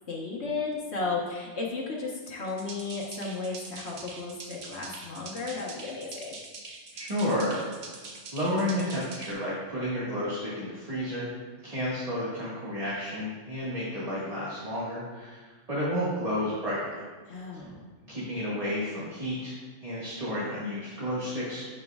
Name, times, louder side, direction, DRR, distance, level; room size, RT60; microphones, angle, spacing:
voice 1, 0.1-6.4 17.3-17.9, left 4 dB, 60° left, -3 dB, 1.4 m, -34 dB
sound 1, 2.5-9.3, right 3 dB, 75° right, 1.3 m, -44 dB
voice 2, 6.9-7.6 8.3-11.3 11.6-15.4 15.7-16.8 18.0-19.6 19.8-21.6, equal, 30° right, -9 dB, 1.7 m, -31 dB
9.4 x 8.1 x 2.3 m, 1.4 s
omnidirectional pair, 1.3 m